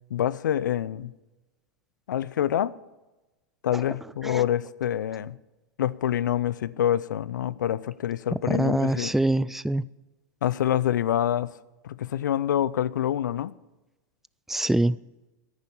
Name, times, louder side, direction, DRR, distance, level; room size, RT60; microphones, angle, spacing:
voice 1, 0.1-1.1 2.1-2.7 3.6-5.4 5.8-9.1 10.4-11.5 11.8-13.5, left 11 dB, 75° left, 0.6 m, -26 dB
voice 2, 8.5-9.8 14.5-15.0, right 2 dB, 5° right, 0.4 m, -24 dB
11.0 x 9.7 x 8.5 m
hypercardioid pair, 105°, 10 cm